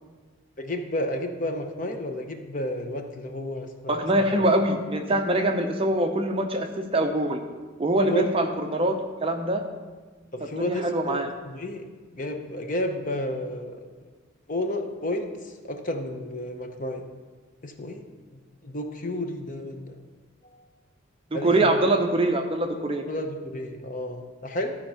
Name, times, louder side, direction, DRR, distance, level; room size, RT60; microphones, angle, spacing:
voice 1, 0.6-4.3 8.0-8.3 10.3-11.8 12.1-13.9 14.5-17.0 17.6-20.0 20.4-20.5 21.3-21.7 23.1-24.7, left 1 dB, 40° left, 5 dB, 0.7 m, -32 dB
voice 2, 3.9-7.4 7.8-8.9 9.2-9.6 10.6-11.3 21.3-23.0, right 1 dB, 25° right, 4 dB, 0.6 m, -24 dB
13.0 x 4.4 x 5.6 m, 1.4 s
head